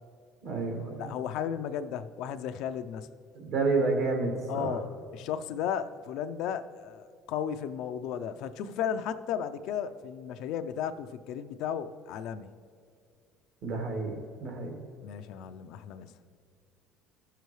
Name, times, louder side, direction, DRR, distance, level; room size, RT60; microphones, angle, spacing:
voice 1, 0.4-1.1 3.3-4.8 13.6-14.8, right 3 dB, 65° right, 2 dB, 1.9 m, -30 dB
voice 2, 1.0-3.1 4.5-4.9 5.1-12.5 15.0-16.1, left 8 dB, 70° left, 10 dB, 0.4 m, -34 dB
15.0 x 6.8 x 3.2 m, 2.3 s
cardioid pair, 110°, 0 cm